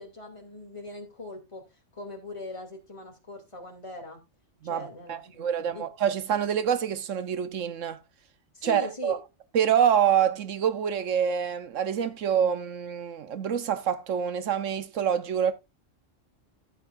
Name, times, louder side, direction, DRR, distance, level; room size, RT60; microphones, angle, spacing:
voice 1, 0.0-1.6 1.9-4.2 4.6-5.9 8.5-9.2, left 2 dB, 25° left, 3.0 m, -41 dB
voice 2, 4.6-8.0 8.6-9.2 9.5-15.5, right 8 dB, 75° right, 1.2 m, -26 dB
14.0 x 8.3 x 2.5 m
omnidirectional pair, 1.3 m